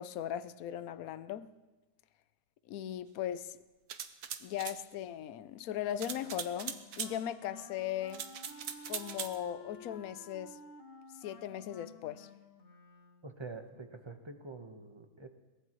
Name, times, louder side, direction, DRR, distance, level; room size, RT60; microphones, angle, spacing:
voice 1, 0.0-1.5 2.7-3.6 4.4-8.2 8.9-10.6 11.2-12.3, left 11 dB, 70° left, 13 dB, 1.1 m, -38 dB
sound 1, 3.9-4.8 6.0-7.1 8.1-9.4, right 8 dB, 80° right, 1.4 m, -40 dB
Wind instrument woodwind instrument, 6.0-13.4, left 2 dB, 40° left, 1.3 m, -53 dB
voice 2, 13.2-15.3, right 3 dB, 20° right, 6 dB, 1.0 m, -46 dB
22.5 x 19.5 x 3.1 m, 1.2 s
omnidirectional pair, 1.6 m